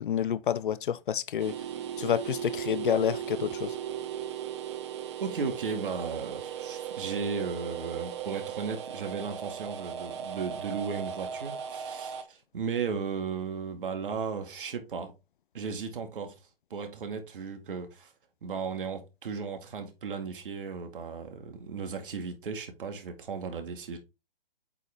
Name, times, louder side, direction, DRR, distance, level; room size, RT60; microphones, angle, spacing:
voice 1, 0.0-1.6 2.0-3.7, left 9 dB, 60° left, 0.5 m, -29 dB
sound 1, 1.4-12.2, right 9 dB, 30° right, 0.8 m, -37 dB
voice 2, 5.2-15.1 15.5-16.3 16.7-18.1 18.4-24.0, right 5 dB, 60° right, 2.1 m, -35 dB
8.3 x 4.0 x 3.5 m
hypercardioid pair, 155°, 29 cm